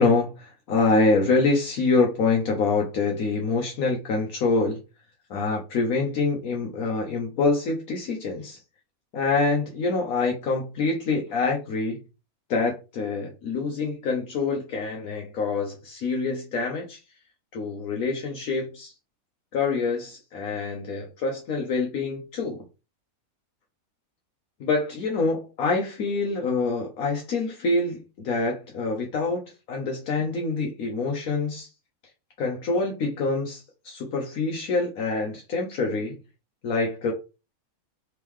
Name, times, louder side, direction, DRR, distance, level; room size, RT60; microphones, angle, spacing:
voice 1, 0.0-4.8 5.3-8.6 9.1-12.0 12.5-17.0 17.5-18.9 19.5-22.6 24.6-29.4 29.7-31.7 32.4-36.2 36.6-37.1, left 3 dB, 75° left, 1.2 m, -26 dB
3.6 x 3.6 x 3.1 m
omnidirectional pair, 1.5 m